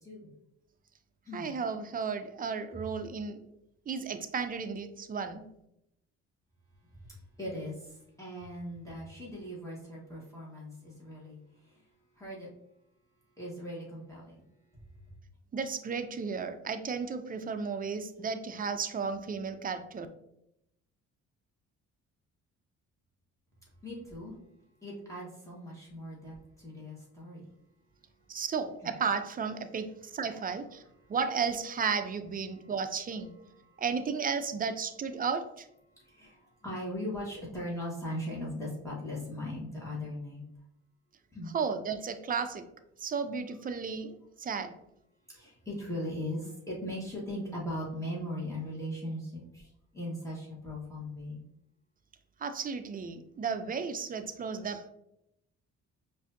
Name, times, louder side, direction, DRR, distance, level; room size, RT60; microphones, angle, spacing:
voice 1, 1.3-3.4 3.9-5.5 15.5-20.1 28.3-30.8 31.1-33.3 33.8-35.7 41.5-42.7 43.0-44.7 52.4-54.9, right 5 dB, 30° right, 8 dB, 0.4 m, -34 dB
voice 2, 7.4-11.4 12.2-12.5 13.4-14.4 23.8-24.3 24.8-27.4 33.7-33.8 36.0-40.4 41.3-41.5 45.3-51.4, left 1 dB, 10° left, -6 dB, 1.4 m, -39 dB
4.7 x 2.6 x 2.6 m, 0.80 s
cardioid pair, 90°, 30 cm